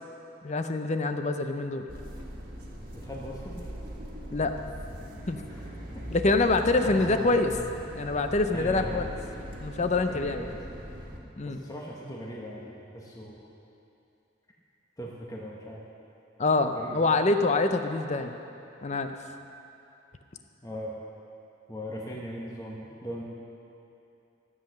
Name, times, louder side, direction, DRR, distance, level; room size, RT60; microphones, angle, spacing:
voice 1, 0.4-1.8 4.3-4.5 5.3-5.4 6.1-7.5 7.9-9.0 9.6-10.4 11.4-11.6 16.4-18.4 18.8-19.1, left 3 dB, 35° left, 7 dB, 0.6 m, -25 dB
sound 1, 1.9-11.2, equal, 45° right, 1.6 m, -40 dB
voice 2, 2.9-3.7 5.5-6.1 6.8-7.4 8.5-9.1 10.1-10.6 11.4-13.5 15.0-15.9 16.7-17.0 20.6-21.0 21.7-23.2, equal, 15° left, -3 dB, 1.1 m, -39 dB
13.5 x 8.0 x 6.4 m, 2.8 s
head